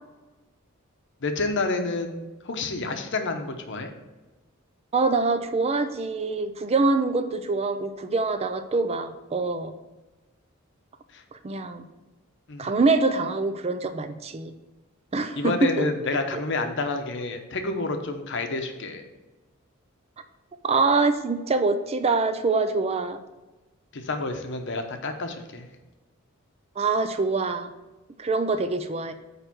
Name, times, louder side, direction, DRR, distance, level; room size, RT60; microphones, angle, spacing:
voice 1, 1.2-3.9 11.1-11.2 12.5-12.7 15.4-19.0 23.9-25.7, left 3 dB, 60° left, 6 dB, 0.9 m, -29 dB
voice 2, 4.9-9.7 11.3-11.8 12.6-14.5 15.1-15.9 16.3-16.4 20.6-23.2 26.8-27.7 28.2-29.1, right 3 dB, 30° right, 10 dB, 0.4 m, -24 dB
9.1 x 3.2 x 6.0 m, 1.2 s
head